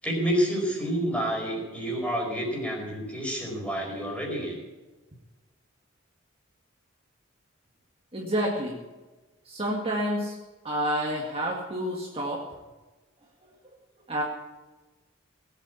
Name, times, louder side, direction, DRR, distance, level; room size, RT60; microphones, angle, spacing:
voice 1, 0.0-4.5, equal, 5° left, -1 dB, 4.9 m, -29 dB
voice 2, 8.1-8.8 9.5-10.4 10.6-12.4 14.1-14.2, equal, 30° right, -2 dB, 2.1 m, -29 dB
18.5 x 8.6 x 8.4 m, 1.2 s
head